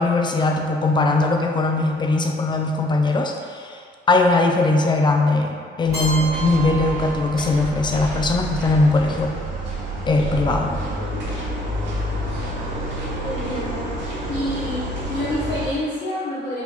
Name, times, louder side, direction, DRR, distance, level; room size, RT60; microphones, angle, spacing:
voice 1, 0.0-3.8 4.1-9.4 10.1-10.8, left 2 dB, 25° left, 3 dB, 0.3 m, -20 dB
sound 1, 5.8-15.7, right 1 dB, 65° right, 1.1 m, -29 dB
Keyboard (musical), 5.9-7.9, right 3 dB, 15° right, 1.3 m, -31 dB
voice 2, 13.2-13.8 14.3-16.6, left 1 dB, 65° left, -11 dB, 1.0 m, -27 dB
4.0 x 2.8 x 2.4 m, 2.2 s
cardioid pair, 90°, 20 cm